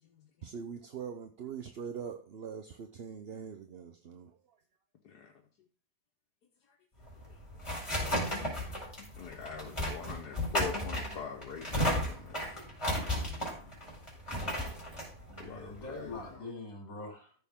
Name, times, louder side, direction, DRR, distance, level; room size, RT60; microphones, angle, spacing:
voice 1, 0.4-4.4, right 7 dB, 50° right, 7 dB, 0.8 m, -42 dB
sound 1, 7.0-16.3, equal, 15° left, 4.7 m, -34 dB
voice 2, 9.2-12.6 13.4-13.6 15.4-16.4, left 6 dB, 85° left, 1 dB, 1.7 m, -44 dB
voice 3, 15.1-17.3, left 2 dB, 60° left, 0 dB, 4.3 m, -44 dB
14.5 x 6.8 x 3.6 m, 0.39 s
omnidirectional pair, 1.7 m